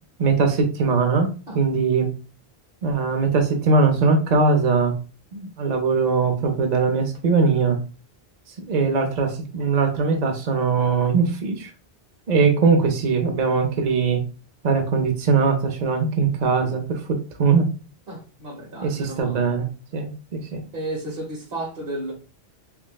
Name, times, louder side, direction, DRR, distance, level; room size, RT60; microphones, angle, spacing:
voice 1, 0.2-1.3 1.5-2.1 2.8-4.9 5.3-7.8 8.7-11.7 12.3-14.2 14.6-17.7 18.8-19.7 19.9-20.6, right 4 dB, 50° right, 3 dB, 0.7 m, -21 dB
voice 2, 18.1-19.5 20.7-22.1, right 1 dB, 70° right, 0 dB, 1.4 m, -33 dB
5.7 x 2.1 x 2.2 m, 0.33 s
omnidirectional pair, 1.1 m